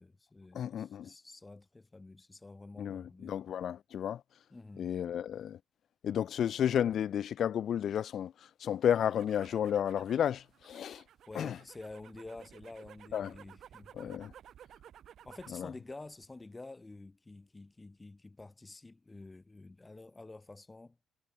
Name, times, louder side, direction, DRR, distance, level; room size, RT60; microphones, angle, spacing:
voice 1, 0.0-3.4 4.5-4.9 11.3-14.2 15.2-21.0, left 2 dB, 20° left, 1.0 m, -49 dB
voice 2, 0.5-1.1 2.8-4.2 4.8-5.6 6.0-8.3 8.6-11.0 11.3-11.6 13.1-13.3 14.0-14.3 15.5-15.7, left 9 dB, 65° left, 0.5 m, -32 dB
sound 1, 8.9-15.6 16.0-16.5, right 10 dB, 65° right, 2.3 m, -56 dB
cardioid pair, 90°, 0 cm